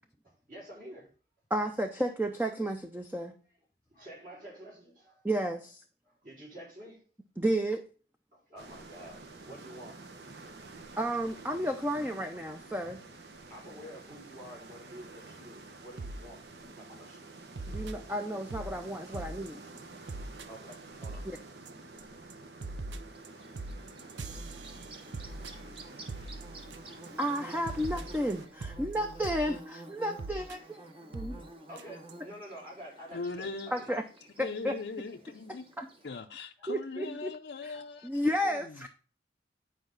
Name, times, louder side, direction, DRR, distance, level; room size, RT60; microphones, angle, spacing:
voice 1, 0.2-1.1 3.9-5.2 6.2-7.0 8.3-10.1 10.9-11.0 11.9-12.0 13.5-16.4 16.8-17.2 20.5-21.3 25.2-25.7 31.7-33.5 33.8-33.9 36.0-36.2 36.6-36.7 37.7-37.8, equal, 50° right, 4.8 m, -49 dB
voice 2, 1.5-3.3 5.2-5.8 7.4-7.8 11.0-13.0 17.7-19.6 21.3-21.4 27.2-30.6 31.1-31.4 33.7-34.0 34.4-34.8 35.8-35.9 36.7-37.3 38.0-38.9, equal, 10° right, 0.5 m, -32 dB
sound 1, 8.6-28.5, right 3 dB, 65° right, 1.0 m, -50 dB
sound 2, 16.0-16.2 16.6-16.9 17.6-18.7 19.1-19.5 19.8-19.9 20.1-20.5 20.7-20.8 21.0-21.4 21.7-22.0 22.3-27.1 27.4-27.5 27.7-29.5 30.2-30.6 31.1-31.4 31.8-31.9 32.1-32.2, right 2 dB, 85° right, 0.7 m, -41 dB
Bird / Buzz, 23.1-36.1, right 1 dB, 30° right, 1.1 m, -51 dB
voice 3, 33.1-33.7 34.4-35.7 36.0-38.1 38.4-38.9, left 4 dB, 70° left, 0.5 m, -40 dB
9.5 x 4.9 x 3.8 m
head